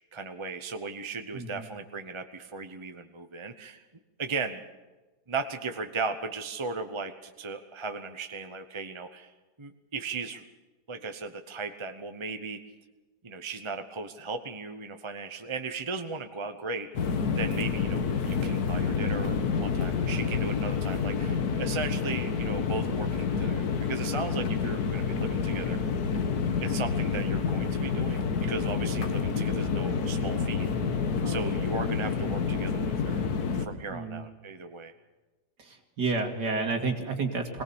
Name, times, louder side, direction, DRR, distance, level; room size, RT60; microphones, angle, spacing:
voice 1, 0.1-3.8 4.2-4.6 5.3-9.3 9.6-10.4 10.9-12.6 13.2-25.8 26.6-30.7 31.2-33.2 33.6-34.9, right 4 dB, 25° right, 7 dB, 0.7 m, -37 dB
voice 2, 1.3-1.7 29.2-29.4 31.2-31.5 33.9-34.2 35.6-37.6, right 3 dB, 85° right, 3 dB, 2.7 m, -31 dB
sound 1, 16.9-33.7, left 5 dB, 65° left, 1.8 m, -28 dB
22.0 x 18.0 x 7.0 m, 1.2 s
omnidirectional pair, 1.8 m